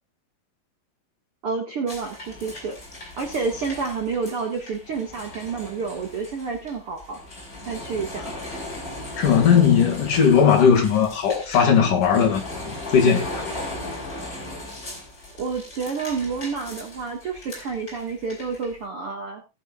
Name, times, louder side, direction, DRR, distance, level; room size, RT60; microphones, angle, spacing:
voice 1, 1.4-2.8 3.2-7.2 7.6-8.3 15.4-19.4, right 5 dB, 60° right, 1.4 m, -29 dB
sound 1, 1.9-18.8, left 1 dB, 20° left, 4.9 m, -37 dB
voice 2, 9.2-13.4, left 7 dB, 55° left, 3.0 m, -18 dB
19.0 x 9.2 x 2.4 m
omnidirectional pair, 5.2 m